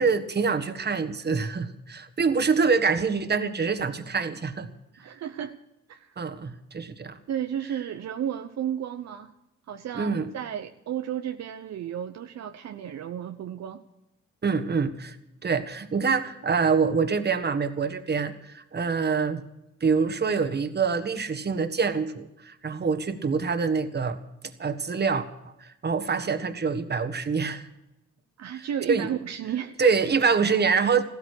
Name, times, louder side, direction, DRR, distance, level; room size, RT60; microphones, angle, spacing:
voice 1, 0.0-4.7 6.2-7.2 9.9-10.3 14.4-15.2 15.4-19.4 19.8-24.2 24.6-25.3 25.6-27.7 28.5-29.1 29.8-31.0, right 5 dB, 35° right, 10 dB, 1.6 m, -25 dB
voice 2, 5.0-5.5 5.9-6.1 7.3-9.3 9.7-13.8 28.4-29.9, right 9 dB, 60° right, 7 dB, 0.9 m, -33 dB
15.0 x 13.0 x 6.6 m, 0.90 s
cardioid pair, 90°, 30 cm